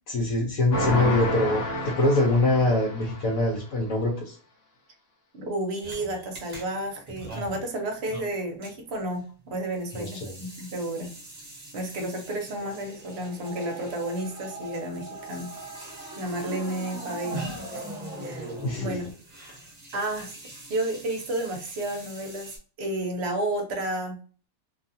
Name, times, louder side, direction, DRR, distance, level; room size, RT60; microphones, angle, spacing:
voice 1, 0.1-4.4 9.9-10.4 18.6-19.0, left 2 dB, 75° left, -2 dB, 1.1 m, -24 dB
sound 1, 0.7-3.5, left 1 dB, 55° left, 0.8 m, -30 dB
voice 2, 5.3-11.1 11.7-15.5 16.2-17.5 18.2-18.5 18.8-19.1 19.9-20.3 20.7-24.2, right 1 dB, 60° right, 3 dB, 0.8 m, -31 dB
sound 2, 5.8-22.6, right 2 dB, 35° right, 0.9 m, -45 dB
sound 3, 12.6-19.1, right 1 dB, 5° right, 0.5 m, -39 dB
2.6 x 2.3 x 2.6 m, 0.41 s
omnidirectional pair, 1.5 m